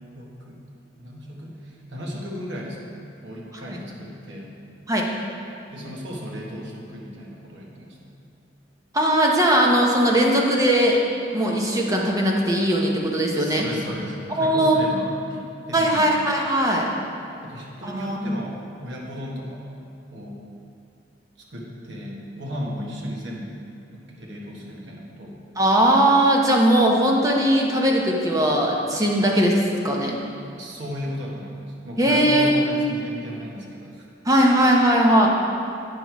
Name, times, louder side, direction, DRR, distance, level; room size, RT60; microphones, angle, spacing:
voice 1, 0.1-0.6 1.0-4.5 5.7-8.1 13.4-16.1 17.4-19.7 20.1-20.4 21.5-23.6 23.9-25.4 30.6-31.5 31.8-34.1, equal, 70° right, -3 dB, 1.4 m, -35 dB
voice 2, 8.9-11.0 11.3-13.6 14.4-14.8 15.7-16.9 17.8-18.3 25.6-30.2 32.0-32.9 34.2-35.3, right 1 dB, 20° right, -1 dB, 0.9 m, -19 dB
8.9 x 6.1 x 4.7 m, 2.6 s
head